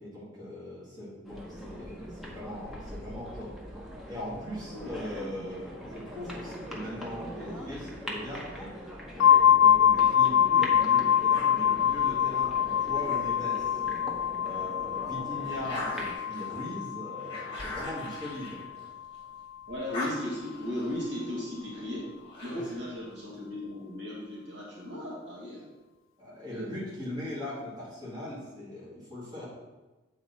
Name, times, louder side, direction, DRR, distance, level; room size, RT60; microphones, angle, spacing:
voice 1, 0.0-3.5 4.1-8.7 9.1-13.9 14.4-18.7 26.2-29.5, left 1 dB, 20° right, -8 dB, 2.2 m, -40 dB
sound 1, 1.2-16.1, equal, ahead, 0.9 m, -42 dB
sound 2, 9.2-18.8, left 9 dB, 80° left, 0.3 m, -25 dB
sound 3, 11.3-14.0 14.5-19.3 19.6-22.9, left 1 dB, 25° left, 1.5 m, -43 dB
voice 2, 19.7-22.1 22.4-25.6 26.5-26.7, left 1 dB, 60° right, -6 dB, 1.9 m, -36 dB
7.8 x 4.3 x 4.2 m, 1.2 s
head